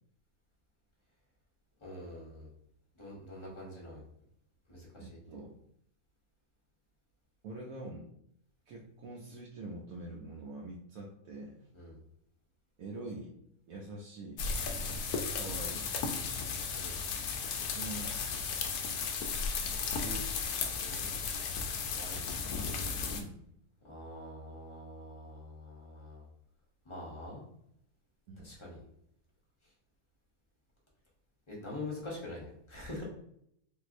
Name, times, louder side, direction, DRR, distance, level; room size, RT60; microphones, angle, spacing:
voice 1, 1.8-2.5 2.9-4.1 4.7-5.2 11.7-12.0 16.7-17.0 19.9-20.2 20.7-22.3 23.8-26.3 26.8-27.4 28.4-28.8 31.5-33.0, left 1 dB, 25° left, -5 dB, 0.6 m, -45 dB
voice 2, 5.0-5.5 7.4-8.1 8.7-11.7 12.8-13.3 13.7-14.4 15.3-15.9 17.7-18.4 23.1-23.5 28.3-28.5, right 2 dB, 70° right, -2 dB, 0.9 m, -45 dB
sound 1, 14.4-23.2, left 5 dB, 75° left, 1.0 m, -35 dB
3.6 x 2.7 x 2.5 m, 0.74 s
omnidirectional pair, 1.7 m